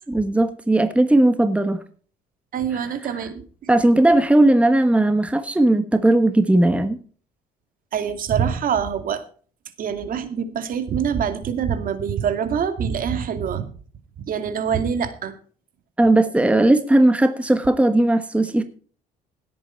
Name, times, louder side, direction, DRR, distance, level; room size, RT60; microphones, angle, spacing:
voice 1, 0.1-1.8 3.0-3.1 3.7-7.0 16.0-18.6, right 1 dB, 5° right, 9 dB, 1.3 m, -17 dB
voice 2, 2.5-3.4 7.9-9.2 9.8-13.7 14.3-15.3, right 7 dB, 55° right, 9 dB, 2.4 m, -25 dB
17.5 x 8.6 x 4.5 m, 0.42 s
cardioid pair, 110°, 17 cm